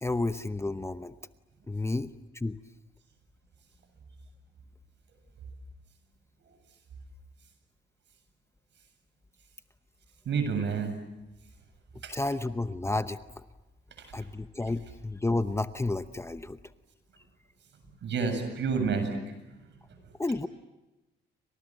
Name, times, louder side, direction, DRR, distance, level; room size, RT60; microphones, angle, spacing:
voice 1, 0.0-1.1 1.7-2.6 12.1-13.2 14.1-16.6 20.2-20.5, left 2 dB, 15° left, 11 dB, 0.9 m, -31 dB
voice 2, 10.3-10.9 12.0-12.1 18.0-19.3, right 5 dB, 65° right, 7 dB, 7.7 m, -29 dB
29.5 x 25.5 x 7.7 m, 1.1 s
cardioid pair, 90°, 20 cm